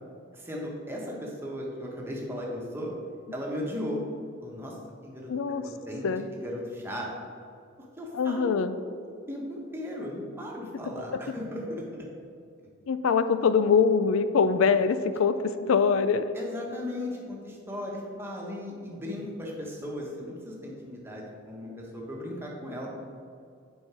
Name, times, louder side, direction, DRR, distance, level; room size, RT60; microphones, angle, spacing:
voice 1, 0.3-2.9 3.3-4.0 4.4-4.8 5.0-5.3 5.9-7.1 8.0-8.6 9.3-12.1 15.4-15.5 16.3-22.9, left 1 dB, 10° right, -2 dB, 1.3 m, -36 dB
voice 2, 5.3-5.6 6.0-6.3 8.1-8.7 12.9-15.4 15.7-16.3, left 5 dB, 75° left, 11 dB, 0.4 m, -23 dB
8.0 x 5.4 x 4.8 m, 2.3 s
head